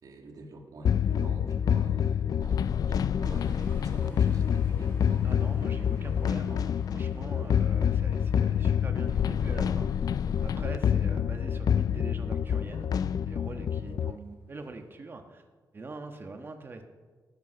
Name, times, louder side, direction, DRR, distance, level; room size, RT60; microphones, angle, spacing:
voice 1, 0.0-5.3, right 2 dB, 60° right, 2 dB, 2.1 m, -47 dB
sound 1, 0.8-14.1, left 8 dB, 60° left, 0.4 m, -27 dB
sound 2, 3.2-15.0, left 1 dB, 30° left, 5.1 m, -55 dB
voice 2, 5.2-6.6 6.9-9.9 10.4-12.9 13.2-15.4 15.7-16.8, right 3 dB, 30° right, 5 dB, 1.3 m, -43 dB
18.0 x 8.0 x 5.6 m, 1.4 s
wide cardioid pair, 135°, 7 cm